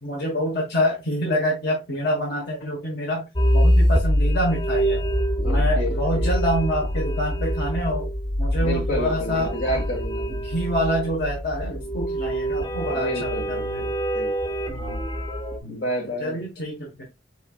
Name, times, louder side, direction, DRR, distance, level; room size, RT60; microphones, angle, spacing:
voice 1, 0.0-3.2 3.5-5.0 5.4-8.1 8.4-9.8 10.4-13.9 14.7-15.0 15.6-15.8 16.2-17.0, equal, 60° left, 1.3 m, -27 dB
sound 1, 3.4-15.6, equal, 25° left, 0.7 m, -24 dB
voice 2, 5.4-6.3 8.6-10.4 12.9-14.6 15.7-16.4, equal, 80° left, 1.8 m, -30 dB
4.5 x 4.4 x 2.3 m
head